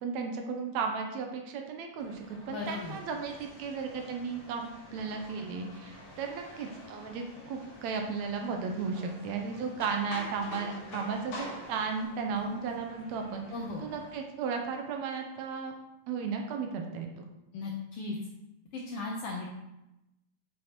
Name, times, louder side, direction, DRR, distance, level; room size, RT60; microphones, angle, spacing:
voice 1, 0.0-13.4 13.8-15.7 16.1-17.3, right 5 dB, 75° right, 3 dB, 1.9 m, -35 dB
sound 1, 2.0-14.1, left 1 dB, 25° left, 1.9 m, -53 dB
voice 2, 2.5-2.9 13.5-13.9 17.5-18.2 18.7-19.5, left 3 dB, 75° left, -1 dB, 1.4 m, -36 dB
sound 2, 2.6-12.0, left 1 dB, 55° left, 2.2 m, -48 dB
7.3 x 6.4 x 3.0 m, 0.92 s
omnidirectional pair, 3.4 m